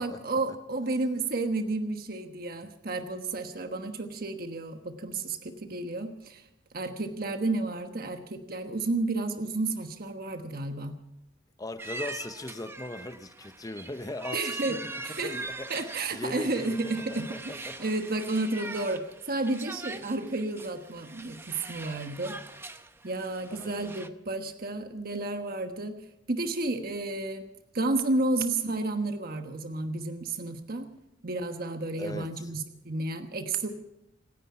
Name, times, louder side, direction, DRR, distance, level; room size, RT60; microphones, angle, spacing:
voice 1, 0.0-6.4 6.7-11.0 14.3-14.8 15.0-15.3 15.7-22.7 23.0-26.0 26.3-27.5 27.7-30.9 31.2-33.7, right 2 dB, 55° right, 1.2 m, -31 dB
voice 2, 11.6-14.8 15.2-15.8 16.1-17.8 23.5-23.9 32.0-32.5, left 2 dB, 20° left, 0.8 m, -39 dB
sound 1, 11.8-24.1, right 2 dB, 15° right, 0.8 m, -42 dB
26.0 x 9.9 x 5.7 m
head